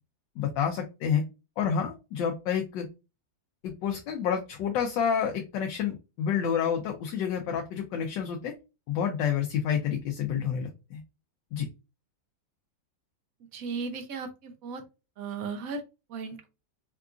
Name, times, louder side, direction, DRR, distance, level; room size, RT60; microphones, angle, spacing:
voice 1, 0.4-1.2 1.6-2.9 3.6-8.5 8.9-11.0 11.5-11.7, left 8 dB, 80° left, 2 dB, 1.3 m, -29 dB
voice 2, 13.5-14.8 15.2-15.8 16.1-16.5, right 4 dB, 65° right, 5 dB, 0.9 m, -36 dB
4.6 x 2.4 x 2.4 m, 0.28 s
omnidirectional pair, 2.0 m